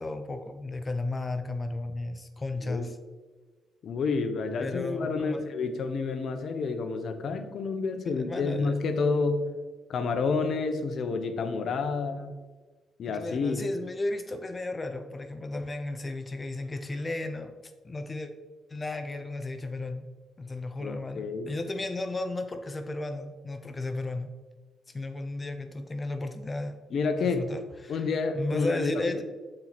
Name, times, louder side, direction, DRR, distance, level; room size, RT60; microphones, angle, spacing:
voice 1, 0.0-3.0 4.6-5.4 8.0-8.8 13.1-17.5 17.8-18.3 18.7-20.1 20.4-24.3 24.9-26.7 27.2-28.1 28.3-29.2, left 2 dB, 25° left, 7 dB, 0.5 m, -34 dB
voice 2, 3.8-9.4 9.9-12.3 13.0-13.6 20.8-21.5 26.9-27.4 27.9-29.2, left 4 dB, 60° left, 7 dB, 0.8 m, -29 dB
7.6 x 4.4 x 4.1 m, 1.3 s
cardioid pair, 90°, 0 cm